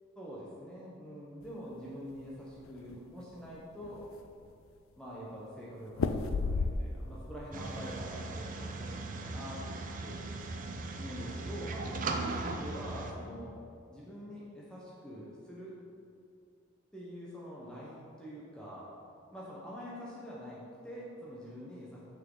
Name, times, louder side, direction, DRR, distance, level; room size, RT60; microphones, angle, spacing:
voice 1, 0.1-4.0 5.0-9.6 10.0-10.5 11.0-13.5 13.9-15.7 16.9-18.9 19.3-22.0, equal, 5° left, -7 dB, 0.9 m, -45 dB
sound 1, 2.1-3.0 3.5-3.6 3.8-4.5 5.9-7.2 7.5-8.0, left 4 dB, 85° left, 0.4 m, -33 dB
sound 2, 7.5-13.1, right 3 dB, 40° right, 0.5 m, -38 dB
6.3 x 6.2 x 3.8 m, 2.4 s
head